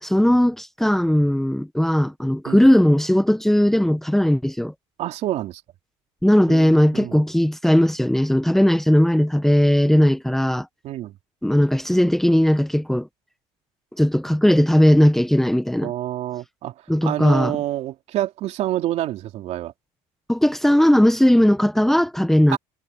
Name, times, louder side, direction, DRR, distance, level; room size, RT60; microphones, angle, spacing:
voice 1, 0.0-4.7 6.2-10.7 11.4-13.1 14.0-15.9 16.9-17.6 20.3-22.6, equal, 5° left, 1.3 m, -18 dB
voice 2, 5.0-5.6 6.5-7.2 10.8-11.2 15.8-16.7 17.0-19.7 22.5-22.6, right 14 dB, 60° right, 3.3 m, -27 dB
supercardioid pair, 105°, 13 cm